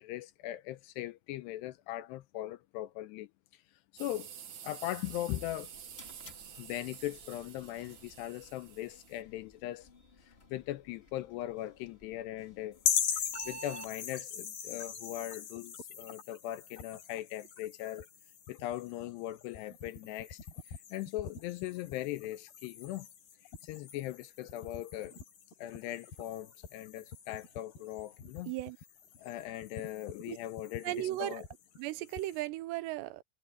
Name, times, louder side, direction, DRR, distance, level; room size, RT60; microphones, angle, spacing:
voice 1, 0.0-3.3 3.9-4.3 4.6-5.7 6.5-9.9 10.2-12.8 13.1-18.1 18.5-20.4 20.7-23.1 23.6-25.2 25.6-28.5 29.2-31.4, left 14 dB, 80° left, 2.7 m, -40 dB
sound 1, 4.0-9.2, right 8 dB, 50° right, 2.4 m, -49 dB
sound 2, 5.6-13.9, right 3 dB, 25° left, 1.5 m, -54 dB
sound 3, 12.8-32.4, left 8 dB, 60° left, 5.4 m, -41 dB
voice 2, 28.5-28.8 30.3-30.4 30.8-31.4 31.8-33.2, right 16 dB, 80° right, 2.8 m, -36 dB
omnidirectional pair, 5.1 m